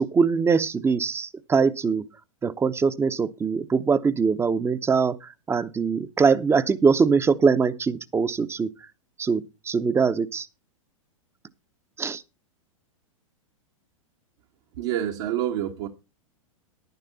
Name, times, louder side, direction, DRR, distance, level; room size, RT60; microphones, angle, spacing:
voice 1, 0.0-2.0 2.4-8.7 9.2-10.5 12.0-12.2, right 5 dB, 15° right, 0.9 m, -22 dB
voice 2, 14.8-15.9, right 11 dB, 55° right, 1.6 m, -27 dB
11.0 x 11.0 x 4.1 m
figure-of-eight pair, 105°, 18 cm